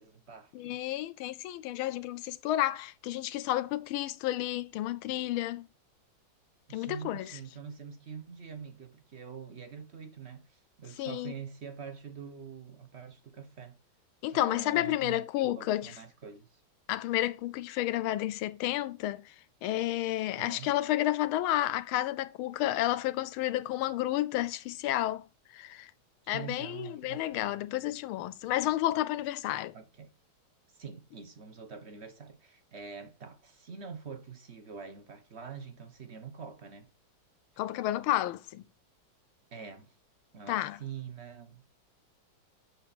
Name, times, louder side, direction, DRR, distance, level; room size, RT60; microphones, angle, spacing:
voice 1, 0.0-0.8 6.7-13.8 14.3-16.6 20.4-20.7 26.2-27.6 29.7-30.1 30.7-36.9 39.5-39.9 40.3-41.6, right 6 dB, 35° right, 1.3 m, -45 dB
voice 2, 0.5-5.7 6.7-7.4 11.0-11.3 14.2-15.9 16.9-19.3 19.6-25.2 25.5-25.9 26.3-29.7 37.6-38.6 40.5-40.8, left 14 dB, 85° left, 1.5 m, -31 dB
7.8 x 6.4 x 4.2 m
omnidirectional pair, 2.2 m